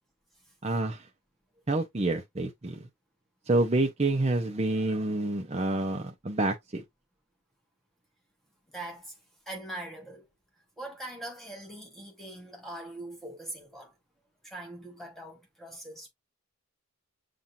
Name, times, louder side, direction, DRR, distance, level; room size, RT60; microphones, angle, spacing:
voice 1, 0.6-1.1 1.7-2.8 3.5-6.8, right 2 dB, 30° right, 0.7 m, -28 dB
voice 2, 8.7-9.2 9.5-10.2 10.8-13.9 14.4-16.1, right 1 dB, ahead, 1.2 m, -42 dB
7.3 x 2.5 x 2.6 m
head